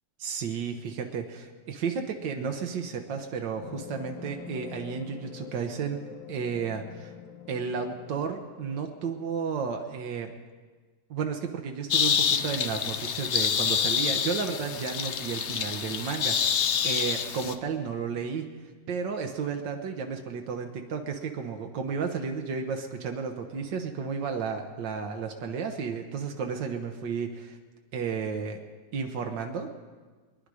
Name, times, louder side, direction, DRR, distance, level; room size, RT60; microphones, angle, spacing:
voice 1, 0.2-6.0 6.3-7.1 7.5-10.3 11.1-18.5 18.9-27.6 27.9-28.6 28.9-29.7, right 6 dB, 85° right, 4 dB, 1.7 m, -33 dB
sound 1, 3.6-9.9, left 9 dB, 80° left, 1.6 m, -46 dB
sound 2, 11.9-17.5, left 7 dB, 60° left, 0.7 m, -27 dB
23.0 x 10.5 x 4.9 m, 1.4 s
omnidirectional pair, 1.9 m